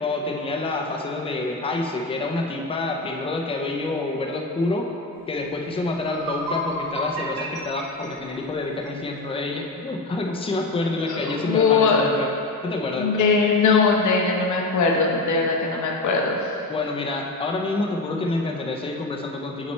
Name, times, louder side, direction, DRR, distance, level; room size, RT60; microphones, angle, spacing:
voice 1, 0.0-4.9 5.3-12.3 12.6-13.1 16.7-19.7, left 2 dB, 15° left, 1 dB, 0.4 m, -27 dB
sound 1, 5.5-5.6 5.9-9.0, equal, 80° right, 1.3 m, -31 dB
voice 2, 11.1-12.0 13.0-16.4, left 4 dB, 55° left, -1 dB, 0.8 m, -20 dB
7.4 x 4.3 x 4.2 m, 2.7 s
wide cardioid pair, 175°, 36 cm